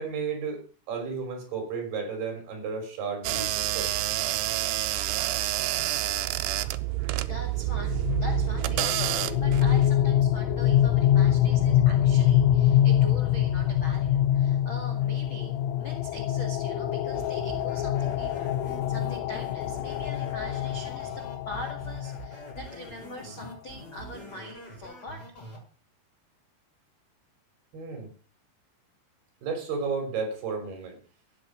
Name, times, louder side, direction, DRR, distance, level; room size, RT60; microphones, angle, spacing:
voice 1, 0.0-3.9 27.7-28.1 29.4-31.0, right 5 dB, 55° right, 5 dB, 5.1 m, -33 dB
sound 1, 3.2-9.9, right 16 dB, 85° right, 2.4 m, -28 dB
voice 2, 7.3-25.3, left 1 dB, 50° left, 2 dB, 1.5 m, -42 dB
sound 2, 7.7-22.6, left 11 dB, 90° left, 3.5 m, -25 dB
sound 3, 17.1-25.6, right 2 dB, 20° left, 6.5 m, -44 dB
14.5 x 9.0 x 6.3 m, 0.40 s
omnidirectional pair, 5.6 m